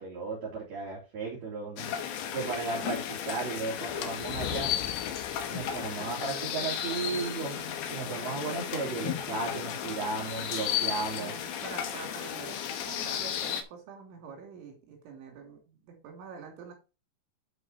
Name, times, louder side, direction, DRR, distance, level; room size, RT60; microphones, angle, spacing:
voice 1, 0.0-1.9 2.3-4.7 5.5-11.3, right 4 dB, 40° right, -4 dB, 3.4 m, -35 dB
sound 1, 1.8-13.6, left 9 dB, 75° left, 2.6 m, -34 dB
Thunder, 3.8-6.3, left 10 dB, 90° left, 3.1 m, -42 dB
voice 2, 11.2-16.7, right 5 dB, 80° right, 3 dB, 5.3 m, -46 dB
11.0 x 4.7 x 4.3 m, 0.30 s
omnidirectional pair, 5.4 m